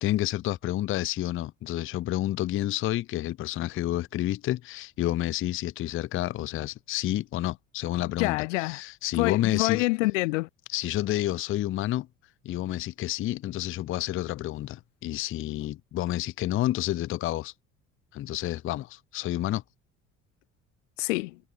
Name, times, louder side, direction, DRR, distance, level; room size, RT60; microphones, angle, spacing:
voice 1, 0.0-9.9 10.7-12.1 12.4-17.5 18.1-19.6, left 14 dB, 35° left, 0.4 m, -29 dB
voice 2, 8.2-8.8 9.1-10.5 21.0-21.4, left 24 dB, 75° left, 0.6 m, -26 dB
hypercardioid pair, 60°, 38 cm